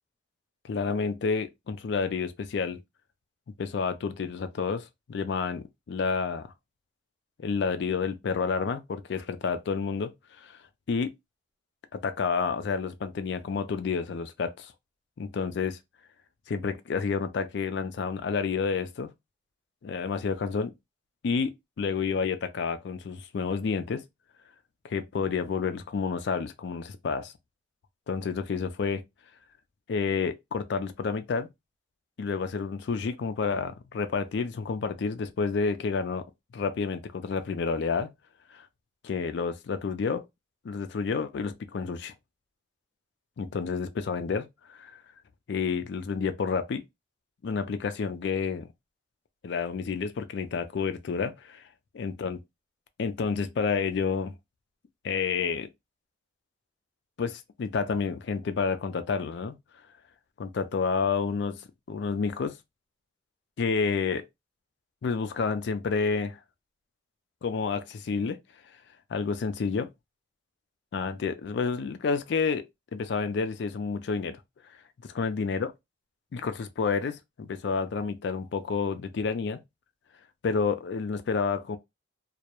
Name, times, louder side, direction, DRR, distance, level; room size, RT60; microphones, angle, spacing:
voice 1, 0.6-2.8 3.6-6.5 7.4-10.1 10.4-10.6 10.9-11.1 11.9-14.7 15.2-15.8 16.5-19.1 19.8-20.7 21.2-21.5 21.8-24.0 24.8-27.3 28.1-29.0 29.9-31.5 32.2-36.2 36.5-38.1 39.0-40.2 40.6-42.1 43.4-45.0 45.5-46.8 47.4-48.7 49.4-51.6 51.9-52.4 53.0-54.3 55.0-55.7 57.2-59.6 60.4-61.6 61.9-62.5 63.6-64.2 65.0-66.4 67.4-68.4 69.1-69.9 70.9-72.6 72.9-74.4 75.0-75.7 76.3-79.6 80.4-81.8, left 5 dB, 55° left, 0.3 m, -29 dB
2.3 x 2.0 x 2.8 m
head